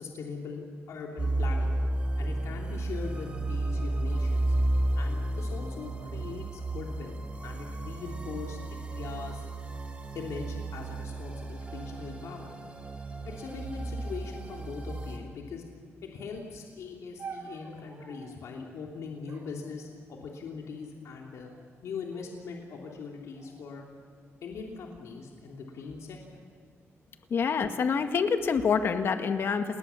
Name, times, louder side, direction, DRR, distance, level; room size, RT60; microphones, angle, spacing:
voice 1, 0.0-1.8 2.2-4.5 4.9-7.2 7.4-9.4 10.1-12.5 13.2-15.6 16.0-21.5 21.8-23.8 24.4-26.4, left 5 dB, 85° left, 0 dB, 3.2 m, -41 dB
sound 1, 1.2-15.2, right 1 dB, 20° right, 3.3 m, -32 dB
sound 2, 17.2-18.4 19.2-20.5 21.2-21.7 22.1-22.7 23.3-24.6 25.4-25.9, right 5 dB, 50° right, 4.1 m, -49 dB
voice 2, 27.3-29.8, left 6 dB, 50° left, 7 dB, 1.7 m, -26 dB
29.5 x 20.0 x 7.1 m, 2.1 s
wide cardioid pair, 155°, 5 cm